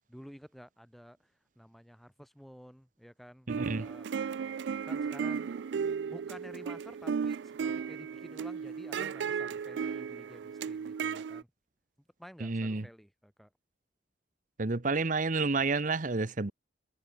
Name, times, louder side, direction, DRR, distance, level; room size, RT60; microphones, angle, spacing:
voice 1, 0.1-1.3 1.6-4.1 4.8-5.5 6.1-11.5 12.2-13.5, equal, ahead, 3.8 m, -52 dB
voice 2, 3.5-3.9 12.4-12.9 14.6-16.5, right 3 dB, 50° right, 0.9 m, -30 dB
sound 1, 3.5-11.4, right 6 dB, 90° right, 0.4 m, -35 dB
head